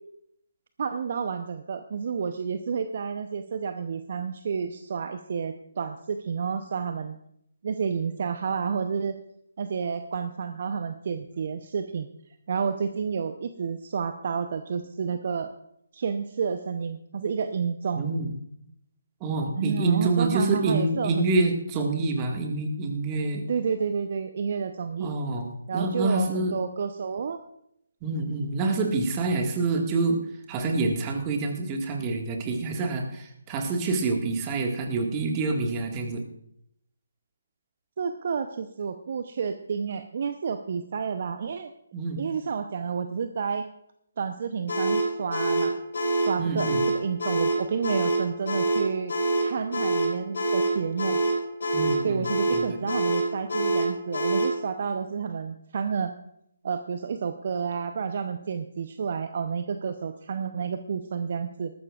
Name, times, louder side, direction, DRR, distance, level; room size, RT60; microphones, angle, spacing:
voice 1, 0.8-7.2 7.6-9.2 9.6-12.1 12.5-15.5 15.9-18.1 19.6-21.3 23.5-25.1 25.7-27.4 38.0-41.7 42.2-43.7 44.2-45.8 46.2-49.1 49.4-51.2 52.0-56.1 56.6-61.7, right 6 dB, 50° right, 9 dB, 0.7 m, -30 dB
voice 2, 18.0-18.3 19.2-23.4 25.0-26.6 28.0-30.2 30.5-36.2 41.9-42.3 46.4-46.8 51.7-52.8, right 3 dB, 20° right, 3 dB, 1.8 m, -27 dB
sound 1, 44.7-54.6, right 2 dB, 55° left, 4.4 m, -25 dB
19.5 x 14.0 x 2.4 m, 0.74 s
figure-of-eight pair, 145°, 0 cm